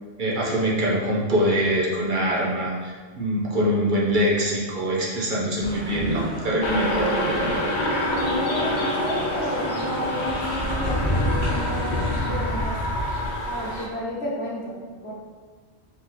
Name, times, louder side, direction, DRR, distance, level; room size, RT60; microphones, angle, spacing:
voice 1, 0.2-7.6, equal, 50° right, -4 dB, 0.9 m, -24 dB
sound 1, 5.6-12.2, equal, 70° right, 1.4 m, -34 dB
sound 2, 6.6-13.9, left 1 dB, 45° left, 0.7 m, -26 dB
voice 2, 8.1-12.8 13.5-15.1, equal, 70° left, -4 dB, 1.3 m, -32 dB
4.9 x 2.9 x 3.8 m, 1.5 s
omnidirectional pair, 1.1 m